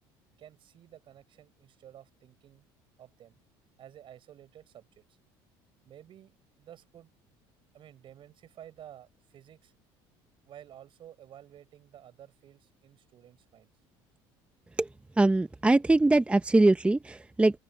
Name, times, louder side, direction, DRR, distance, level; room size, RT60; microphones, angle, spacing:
voice 1, 0.4-2.6 3.0-3.4 3.8-5.2 5.8-7.1 7.7-9.7 10.5-13.7, right 11 dB, 50° right, 5.2 m, -52 dB
voice 2, 15.2-17.6, right 2 dB, 10° right, 0.8 m, -22 dB
open air
supercardioid pair, 90°, 11 cm